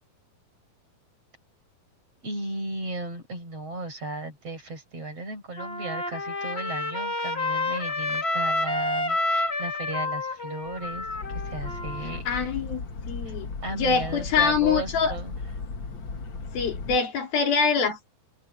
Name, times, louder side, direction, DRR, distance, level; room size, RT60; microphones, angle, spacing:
voice 1, 2.2-11.1 11.4-12.3 13.3-13.4 13.6-15.4, right 2 dB, 40° right, 8.3 m, -35 dB
Trumpet, 5.6-12.2, left 2 dB, 25° left, 1.8 m, -29 dB
sound 1, 10.7-17.0, left 4 dB, 40° left, 2.1 m, -36 dB
voice 2, 12.3-13.5 13.8-15.2 16.5-18.1, left 5 dB, 75° left, 5.2 m, -24 dB
omnidirectional pair, 4.3 m